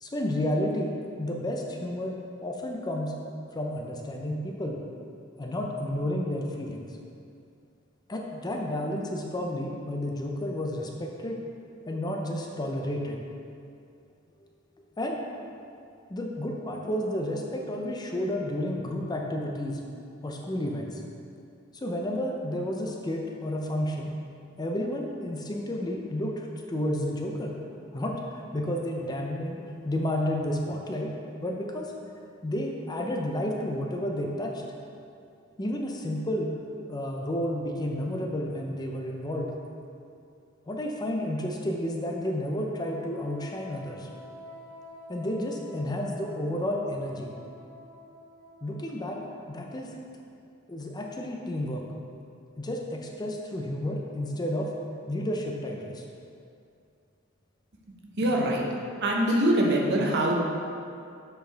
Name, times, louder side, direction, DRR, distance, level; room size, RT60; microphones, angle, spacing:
voice 1, 0.0-3.1 3.5-4.8 5.4-6.9 8.1-11.5 11.9-13.2 15.0-15.2 16.1-19.8 20.2-21.0 21.7-24.1 24.6-27.5 27.9-31.1 31.4-31.9 32.4-34.5 35.6-36.5 36.9-39.5 40.7-44.1 45.1-47.3 48.6-49.2 49.5-49.9 50.7-51.8 52.6-54.7 55.1-56.0, left 1 dB, 20° left, 0 dB, 0.5 m, -31 dB
Wind instrument woodwind instrument, 42.6-50.0, left 1 dB, 80° right, 1.5 m, -49 dB
voice 2, 58.0-58.6 59.0-60.4, right 1 dB, 55° right, -1 dB, 0.9 m, -24 dB
7.6 x 4.6 x 3.4 m, 2.4 s
head